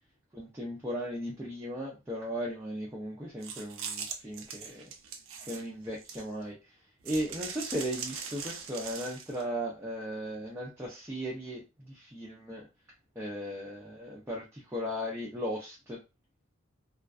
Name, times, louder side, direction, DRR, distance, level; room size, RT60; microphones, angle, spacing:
voice 1, 0.3-4.9 5.5-6.6 7.0-12.6 13.2-16.0, equal, 10° right, 0.5 m, -37 dB
sound 1, 3.4-6.5 7.0-9.4, right 6 dB, 75° right, 0.5 m, -41 dB
2.4 x 2.2 x 2.3 m
head